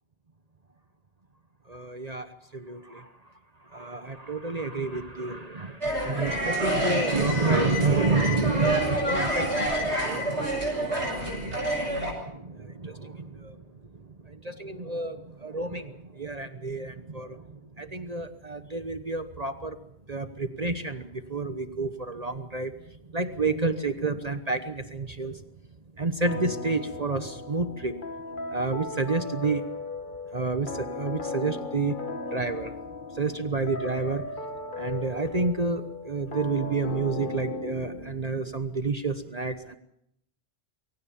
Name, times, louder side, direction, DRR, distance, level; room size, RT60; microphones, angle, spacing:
voice 1, 1.7-3.1 3.6-13.6 13.9-19.8 20.1-25.4 26.0-27.9 28.5-29.6 30.3-32.0 32.3-32.7 33.1-34.2 34.8-39.8, right 3 dB, 35° right, 10 dB, 1.1 m, -30 dB
sound 1, 5.8-12.1, right 1 dB, 80° right, 7.6 m, -28 dB
sound 2, 26.3-38.6, left 3 dB, 45° left, 1.7 m, -37 dB
23.5 x 17.5 x 7.2 m, 0.75 s
omnidirectional pair, 1.1 m